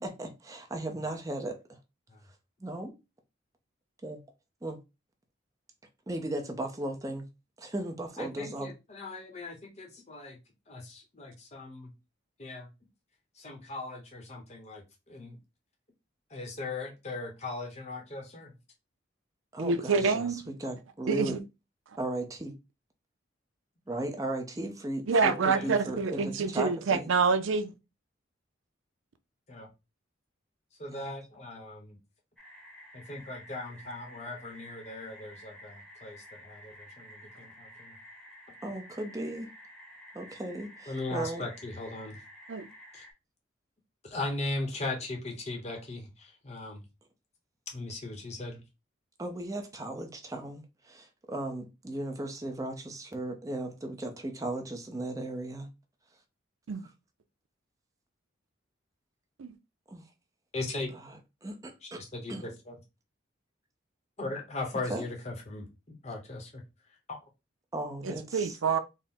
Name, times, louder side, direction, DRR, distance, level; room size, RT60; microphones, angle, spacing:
voice 1, 0.0-1.8 2.6-2.9 4.0-4.2 4.6-4.8 6.1-7.3 7.6-8.7 19.5-21.4 22.0-22.5 23.9-27.1 30.9-31.2 38.6-39.5 40.1-41.4 49.2-55.7 56.8-56.9 59.9-60.1 60.9-62.0 62.3-62.4 64.7-65.1 67.7-68.6, right 1 dB, 15° right, 0.6 m, -36 dB
voice 2, 8.2-10.4 10.7-11.9 12.4-12.7 13.4-15.4 16.3-18.5 25.5-25.7 29.5-29.7 30.8-32.0 32.9-38.0 40.9-42.2 42.9-43.0 44.0-46.8 47.7-48.6 60.5-60.9 61.8-62.7 64.2-66.6 67.1-67.2, left 2 dB, 35° left, 0.8 m, -38 dB
voice 3, 19.6-20.4 21.1-21.4 25.1-27.7 42.5-42.7 56.7-56.8 59.4-59.5 68.0-68.8, right 4 dB, 90° right, 0.5 m, -27 dB
sound 1, 32.4-43.1, equal, ahead, 0.9 m, -51 dB
3.6 x 2.0 x 4.2 m
head